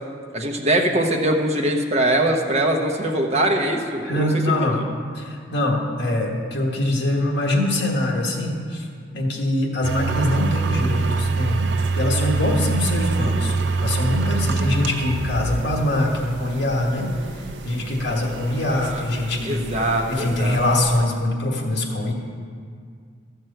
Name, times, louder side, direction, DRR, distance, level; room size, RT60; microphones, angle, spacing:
voice 1, 0.3-4.7 13.5-13.6 18.7-19.0 19.4-20.6, right 1 dB, 35° right, 2 dB, 1.0 m, -22 dB
voice 2, 4.0-4.8 5.1-8.9 9.1-11.7 12.0-13.6 13.8-17.1 17.4-19.6 20.1-22.1, left 1 dB, 70° left, -1 dB, 1.4 m, -23 dB
sound 1, 9.8-21.0, right 4 dB, 75° right, 0.6 m, -26 dB
12.5 x 4.6 x 7.7 m, 2.1 s
head